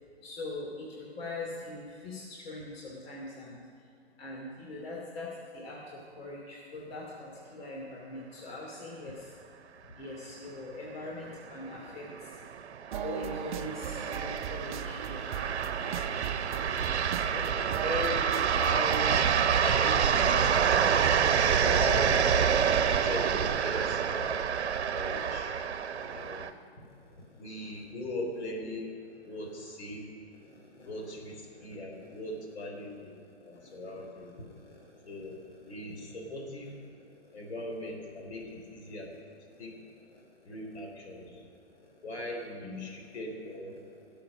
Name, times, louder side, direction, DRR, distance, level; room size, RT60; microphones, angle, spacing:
voice 1, 0.2-3.7 4.2-9.3 10.0-12.4 13.0-15.4 26.0-26.1 30.6-30.9 31.5-31.6 33.6-33.7 35.9-36.0 39.5-39.6 40.1-40.2 41.8-41.9 42.6-42.8, left 2 dB, 60° left, -3 dB, 2.8 m, -42 dB
sound 1, 11.6-26.5, right 7 dB, 75° right, 0.9 m, -27 dB
sound 2, 12.9-19.1, right 9 dB, 45° right, 0.7 m, -38 dB
voice 2, 15.7-20.6 21.5-24.5 24.9-25.6 25.9-26.6 27.4-29.0 29.2-30.1 30.8-34.5 35.0-35.4 35.7-36.8 37.3-39.1 39.6-39.8 40.5-41.4 42.0-43.8, left 1 dB, 75° left, 0 dB, 3.7 m, -40 dB
17.0 x 7.6 x 6.3 m, 2.4 s
hypercardioid pair, 140°, 33 cm